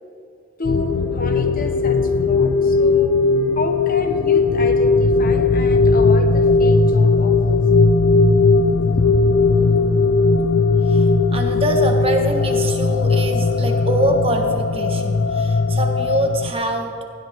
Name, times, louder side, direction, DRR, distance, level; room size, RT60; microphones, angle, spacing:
sound 1, 0.6-16.5, left 3 dB, 90° left, 0.6 m, -17 dB
voice 1, 0.6-3.2 3.5-7.6 8.1-8.2 8.9-9.1, left 2 dB, 45° left, 5 dB, 1.2 m, -30 dB
voice 2, 10.8-17.0, right 1 dB, 30° right, 3 dB, 1.4 m, -24 dB
19.0 x 15.5 x 3.6 m, 2.4 s
head